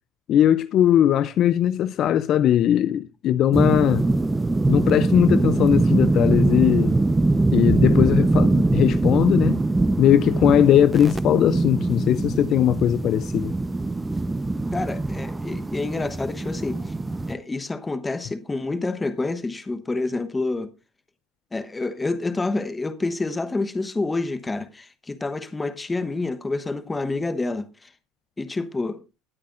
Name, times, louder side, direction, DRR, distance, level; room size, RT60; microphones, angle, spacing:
voice 1, 0.3-4.1 4.7-6.9 7.5-9.6 10.0-13.5, left 10 dB, 45° left, 0.4 m, -19 dB
sound 1, 3.5-17.3, right 2 dB, 10° right, 0.8 m, -22 dB
voice 2, 14.7-16.9 17.3-20.7 21.5-27.9 28.4-29.0, left 3 dB, 15° left, 1.0 m, -28 dB
18.5 x 8.5 x 2.5 m
cardioid pair, 135°, 0 cm